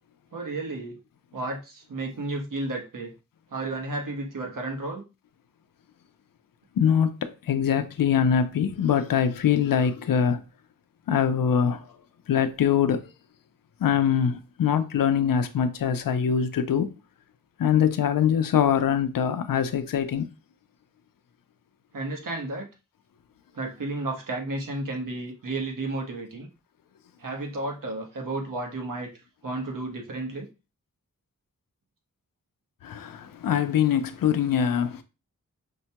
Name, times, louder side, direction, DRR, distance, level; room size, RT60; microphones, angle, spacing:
voice 1, 0.3-1.0 1.3-3.1 3.5-5.0 21.9-22.7 23.5-26.5 27.2-29.1 29.4-30.5, right 2 dB, 70° right, 1.1 m, -32 dB
voice 2, 6.8-10.4 11.1-11.9 12.3-13.0 13.8-16.9 17.6-20.3 32.8-35.0, left 8 dB, 85° left, 0.5 m, -23 dB
5.1 x 2.2 x 2.8 m
wide cardioid pair, 70°, 33 cm